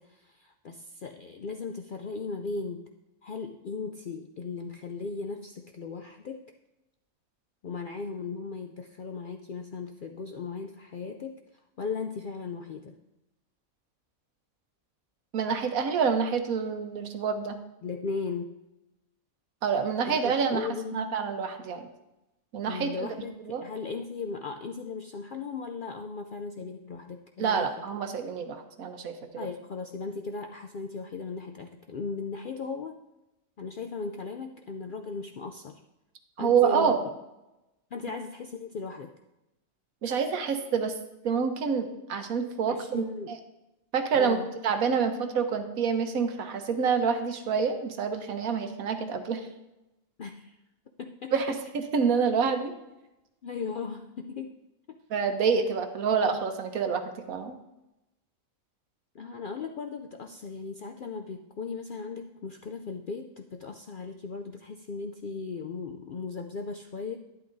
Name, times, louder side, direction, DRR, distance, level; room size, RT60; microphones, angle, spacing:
voice 1, 0.0-2.8 3.2-6.4 7.6-11.4 11.8-13.0 17.8-18.5 20.1-21.1 22.7-27.7 29.3-33.0 33.6-35.8 36.4-37.1 37.9-39.1 42.7-43.3 44.1-44.5 50.2-50.6 51.0-51.3 53.4-54.6 54.9-55.0 59.1-67.2, left 4 dB, 65° left, 4 dB, 0.5 m, -37 dB
voice 2, 15.3-17.6 19.6-21.9 22.5-22.9 23.5-23.6 27.4-29.5 36.4-37.0 40.0-40.9 41.2-43.4 43.9-44.4 44.6-49.5 51.3-52.7 55.1-57.6, right 6 dB, 85° right, 7 dB, 1.3 m, -27 dB
11.5 x 10.5 x 2.6 m, 0.95 s
omnidirectional pair, 1.4 m